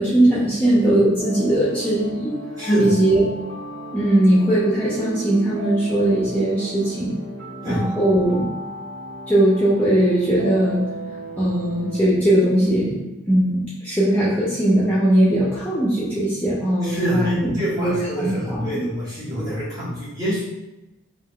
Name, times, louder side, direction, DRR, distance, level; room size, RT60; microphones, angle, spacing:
voice 1, 0.0-2.3 2.8-3.2 3.9-7.1 7.6-8.5 9.3-10.8 11.4-17.5 17.8-18.8, right 1 dB, 10° left, -9 dB, 0.4 m, -19 dB
sound 1, 1.2-12.1, right 1 dB, 55° right, 1.5 m, -35 dB
voice 2, 2.6-2.9 7.6-7.8 16.8-20.4, equal, 20° right, -8 dB, 1.0 m, -25 dB
3.5 x 2.3 x 2.2 m, 0.98 s
head